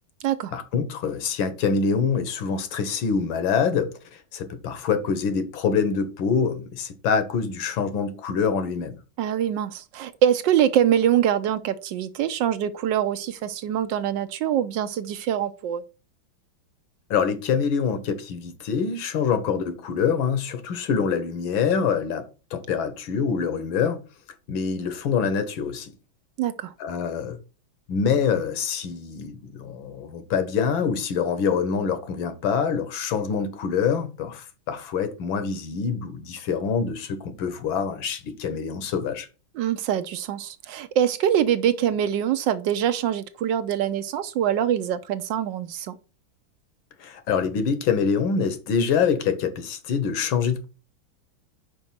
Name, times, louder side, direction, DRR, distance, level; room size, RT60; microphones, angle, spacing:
voice 1, 0.5-9.0 17.1-24.0 24.5-25.9 26.8-27.4 27.9-39.3 47.0-50.6, left 6 dB, 80° left, 1.7 m, -25 dB
voice 2, 9.2-15.8 26.4-26.7 39.6-45.9, right 10 dB, 75° right, 1.1 m, -24 dB
5.3 x 4.9 x 5.8 m
omnidirectional pair, 2.2 m